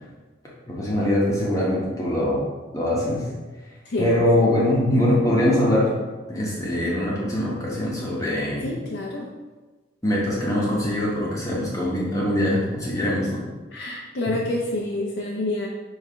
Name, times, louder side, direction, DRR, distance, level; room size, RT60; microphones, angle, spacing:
voice 1, 0.7-2.4 2.7-3.3 4.0-5.9 6.3-8.7 10.0-13.4 14.3-14.4, left 1 dB, 15° left, -5 dB, 1.1 m, -22 dB
voice 2, 3.8-4.2 8.6-9.3 13.7-15.7, left 2 dB, 70° left, -2 dB, 0.7 m, -28 dB
5.3 x 3.5 x 5.0 m, 1.3 s
head